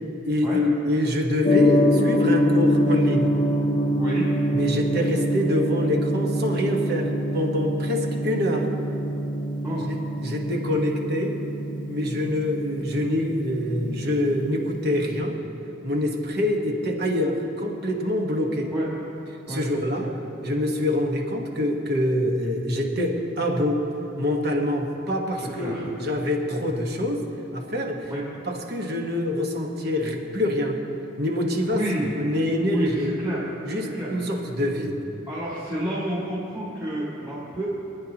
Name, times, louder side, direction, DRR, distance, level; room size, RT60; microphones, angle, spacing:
voice 1, 0.2-3.4 4.5-8.7 9.9-11.4 11.9-15.4 15.8-18.7 19.5-20.1 20.4-23.9 24.2-28.1 28.5-30.8 31.2-31.8 32.1-33.2 33.6-35.0, left 1 dB, 50° right, 1 dB, 1.4 m, -25 dB
Gong, 1.4-15.2, equal, 40° left, 0.7 m, -25 dB
voice 2, 25.4-25.9 28.1-28.2 31.7-32.1 32.7-33.5 33.9-34.1 35.3-37.7, equal, 20° right, -10 dB, 2.2 m, -29 dB
27.0 x 9.8 x 3.0 m, 2.9 s
head